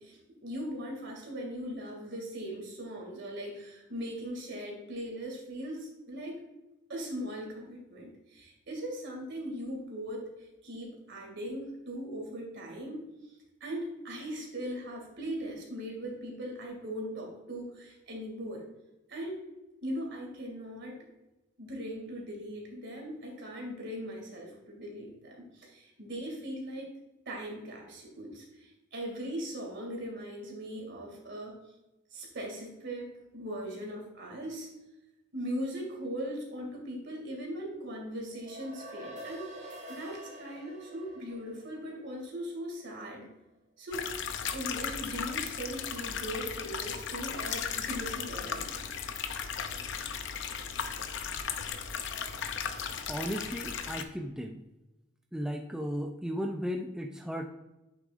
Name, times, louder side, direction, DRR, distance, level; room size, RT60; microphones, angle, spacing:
voice 1, 0.0-6.4 6.9-13.0 13.6-18.6 19.1-19.4 19.8-21.1 21.6-26.9 27.3-31.6 32.1-33.1 33.3-34.7 35.3-43.3 43.8-44.1 44.5-48.8, equal, 65° right, 0 dB, 2.4 m, -39 dB
sound 1, 38.3-42.9, right 1 dB, 40° right, 1.4 m, -47 dB
sound 2, 43.9-54.0, left 7 dB, 65° left, 0.6 m, -36 dB
voice 2, 53.1-54.6 55.3-57.5, equal, 5° right, 3 dB, 0.4 m, -35 dB
8.5 x 6.8 x 2.5 m, 1.0 s
head